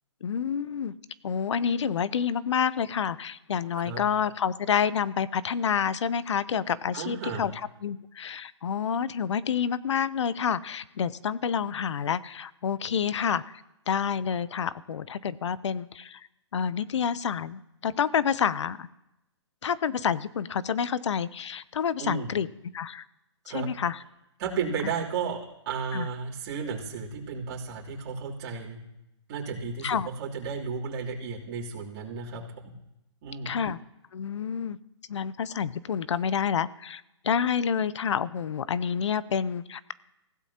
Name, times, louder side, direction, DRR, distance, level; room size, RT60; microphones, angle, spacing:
voice 1, 0.2-0.9 1.2-7.5 7.8-13.6 13.9-16.2 16.5-18.9 19.6-22.5 22.7-23.0 23.5-24.0 25.9-26.1 29.8-30.1 33.5-33.8 34.1-34.8 35.1-39.9, left 7 dB, 75° left, 18 dB, 0.7 m, -28 dB
voice 2, 6.9-7.4 22.0-22.3 23.5-23.7 24.4-28.8 29.3-32.7 33.2-33.6, right 5 dB, 40° right, -6 dB, 3.1 m, -33 dB
23.5 x 15.5 x 2.9 m, 0.90 s
hypercardioid pair, 145°, 15 cm